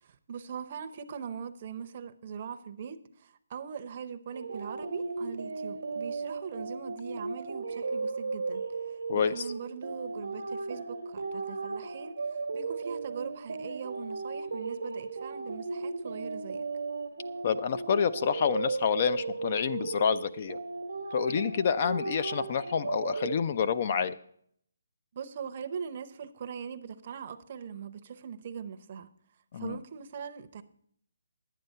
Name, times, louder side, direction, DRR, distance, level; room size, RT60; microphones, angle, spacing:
voice 1, 0.0-8.6 9.1-16.7 25.1-29.1 29.5-30.6, right 7 dB, 40° right, 0.7 m, -41 dB
sound 1, 4.3-23.4, right 3 dB, 85° right, 1.0 m, -36 dB
voice 2, 9.1-9.4 17.4-20.6 21.1-24.1 29.5-29.8, left 7 dB, 40° left, 0.4 m, -28 dB
11.0 x 9.2 x 5.5 m
hypercardioid pair, 165°, 0 cm